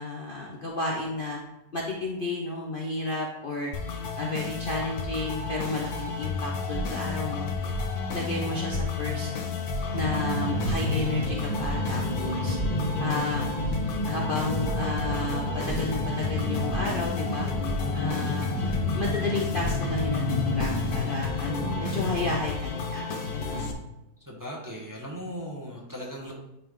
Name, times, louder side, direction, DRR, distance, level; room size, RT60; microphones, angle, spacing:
voice 1, 0.0-1.4 1.7-3.7 4.2-7.5 8.1-9.3 9.9-12.6 13.0-13.5 14.0-17.5 17.9-18.5 18.9-23.7, left 2 dB, 50° left, -1 dB, 0.7 m, -32 dB
sound 1, 3.7-23.7, left 5 dB, 75° left, 1.4 m, -32 dB
sound 2, 6.7-9.4 9.6-17.2 17.6-21.1, right 3 dB, 60° right, 3.3 m, -37 dB
sound 3, 9.9-22.4, left 1 dB, 30° left, 1.0 m, -31 dB
voice 2, 24.2-26.3, equal, 15° right, -3 dB, 0.9 m, -38 dB
9.6 x 3.5 x 3.7 m, 0.91 s
omnidirectional pair, 1.7 m